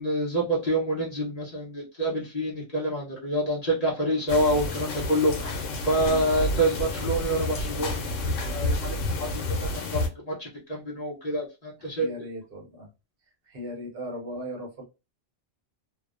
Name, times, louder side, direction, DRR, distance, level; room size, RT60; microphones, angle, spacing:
voice 1, 0.0-12.1, right 1 dB, 40° left, -4 dB, 0.7 m, -27 dB
sound 1, 4.3-10.1, left 2 dB, 85° left, 1.0 m, -30 dB
voice 2, 11.8-12.9 13.5-14.8, equal, 55° right, 0 dB, 1.0 m, -38 dB
2.6 x 2.0 x 2.3 m, 0.27 s
omnidirectional pair, 1.2 m